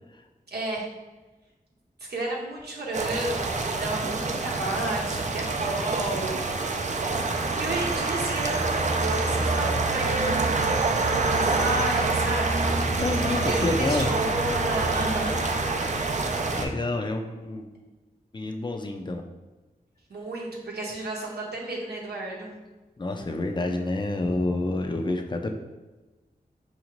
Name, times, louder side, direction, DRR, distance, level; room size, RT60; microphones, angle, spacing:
voice 1, 0.5-0.9 2.0-6.5 7.5-12.6 13.4-15.4 20.1-22.5, right 2 dB, 85° right, -3 dB, 0.7 m, -32 dB
sound 1, 2.9-16.6, right 3 dB, 45° right, 0.4 m, -26 dB
voice 2, 13.0-14.1 16.5-17.7 18.3-19.2 23.0-25.6, left 2 dB, 30° left, 4 dB, 0.4 m, -28 dB
4.8 x 2.6 x 3.0 m, 1.2 s
wide cardioid pair, 60°, 16 cm